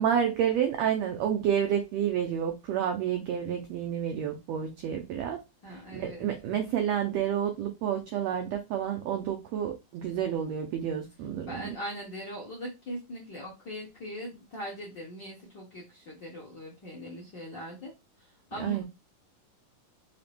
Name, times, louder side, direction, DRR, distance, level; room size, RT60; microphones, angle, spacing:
voice 1, 0.0-5.4 5.7-11.7 18.6-18.8, right 9 dB, 85° right, 1.5 m, -29 dB
voice 2, 5.6-6.3 11.5-17.9 18.5-18.8, equal, 60° left, 1.1 m, -40 dB
5.6 x 2.9 x 3.3 m
omnidirectional pair, 3.9 m